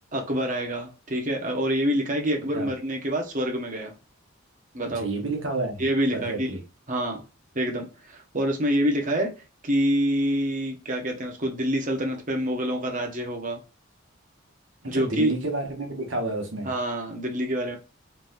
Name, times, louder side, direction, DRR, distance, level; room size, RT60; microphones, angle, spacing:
voice 1, 0.1-3.9 4.7-5.0 5.8-6.5 6.9-7.2 7.5-9.3 9.6-13.6 14.9-15.3 16.6-17.8, equal, 40° right, 1.2 m, -26 dB
voice 2, 2.3-2.7 4.8-5.8 6.1-6.6 14.9-16.7, right 2 dB, 70° right, 1.4 m, -30 dB
4.0 x 3.5 x 2.7 m
head